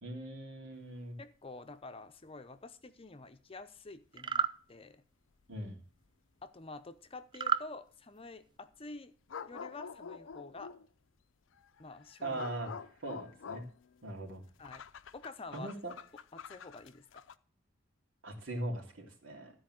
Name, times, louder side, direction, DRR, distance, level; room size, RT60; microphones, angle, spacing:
voice 1, 0.0-1.2 5.5-5.8 12.2-12.7 13.0-13.6 14.0-14.4 15.5-15.9 18.2-19.5, right 1 dB, 85° right, 1 dB, 3.1 m, -40 dB
voice 2, 1.2-5.0 6.4-9.1 9.5-10.7 11.8-12.4 14.6-14.8 15.1-15.7 16.3-17.2, left 3 dB, 30° left, 10 dB, 0.7 m, -48 dB
sound 1, 4.1-4.6 7.3-7.7, right 6 dB, 25° right, 0.4 m, -31 dB
sound 2, 4.4-4.5 5.4-5.5 9.3-10.9 11.5-17.4, left 6 dB, 75° left, 0.5 m, -48 dB
13.0 x 4.6 x 7.6 m, 0.41 s
head